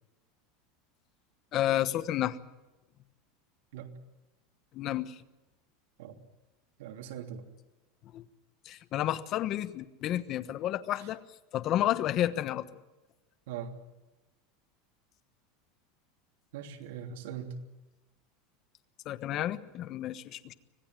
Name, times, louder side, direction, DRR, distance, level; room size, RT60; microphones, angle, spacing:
voice 1, 1.5-2.4 4.7-5.2 8.1-8.2 8.6-11.2 11.5-12.7 19.0-20.5, left 12 dB, 35° left, 11 dB, 1.1 m, -31 dB
voice 2, 6.8-7.5 11.0-11.1 13.5-13.7 16.5-17.6, right 8 dB, 80° right, 4 dB, 3.1 m, -41 dB
25.5 x 18.0 x 9.0 m, 1.0 s
supercardioid pair, 160°, 0 cm